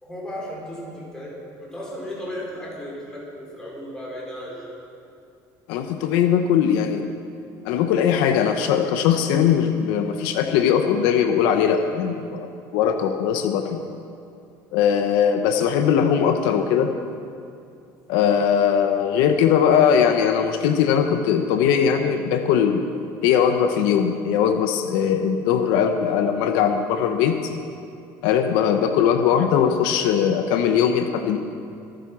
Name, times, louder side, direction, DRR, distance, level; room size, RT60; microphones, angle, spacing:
voice 1, 0.0-4.7, equal, 10° left, -4 dB, 4.5 m, -35 dB
voice 2, 5.7-7.1 7.6-13.8 14.7-16.9 18.1-22.8 23.2-27.5 28.2-31.4, left 8 dB, 85° left, 6 dB, 1.1 m, -20 dB
25.5 x 9.0 x 6.2 m, 2.5 s
cardioid pair, 165°, 8 cm